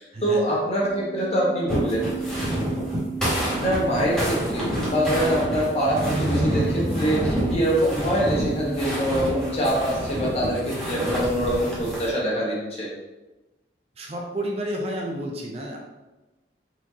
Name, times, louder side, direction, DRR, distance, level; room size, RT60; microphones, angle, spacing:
voice 1, 0.0-2.1 3.6-12.9, equal, 35° left, -4 dB, 1.2 m, -24 dB
sound 1, 0.7-9.7, right 4 dB, 60° left, 1.2 m, -36 dB
sound 2, 1.7-12.1, equal, 5° left, 1.5 m, -28 dB
Motorcycle, 5.8-11.9, equal, 75° right, 1.0 m, -32 dB
voice 2, 14.0-15.8, right 1 dB, 35° right, 0 dB, 0.6 m, -30 dB
4.5 x 4.2 x 2.8 m, 1.1 s
head